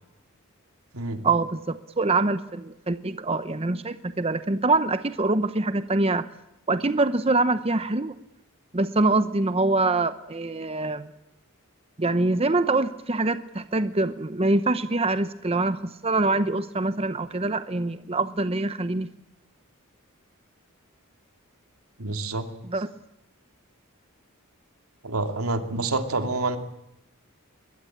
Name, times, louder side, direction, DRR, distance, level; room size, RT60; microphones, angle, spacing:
voice 1, 1.2-6.3 6.7-8.2 8.7-11.1 12.0-19.1 22.7-22.9, right 2 dB, 25° right, 12 dB, 0.8 m, -24 dB
voice 2, 22.0-22.4 25.0-26.6, right 2 dB, 85° right, 7 dB, 2.8 m, -27 dB
22.0 x 21.5 x 8.7 m, 0.86 s
head